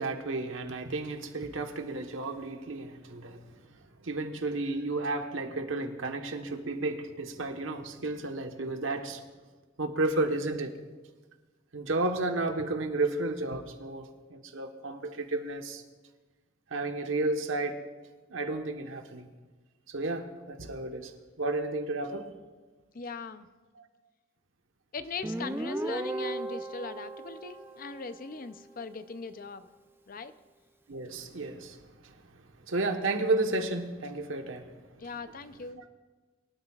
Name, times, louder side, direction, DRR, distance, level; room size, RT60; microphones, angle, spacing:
voice 1, 0.0-3.5 4.0-9.2 9.8-10.7 11.7-15.8 16.7-17.8 18.3-19.3 19.9-21.1 21.4-22.3 23.8-23.9 30.9-32.1 32.7-34.7, right 2 dB, 85° right, 5 dB, 1.2 m, -32 dB
voice 2, 22.9-23.5 24.9-29.7 30.1-30.3 35.0-35.8, left 4 dB, 45° left, 11 dB, 0.6 m, -40 dB
Guitar, 25.2-28.7, right 1 dB, 10° right, 0.4 m, -36 dB
23.5 x 12.5 x 2.4 m, 1.3 s
head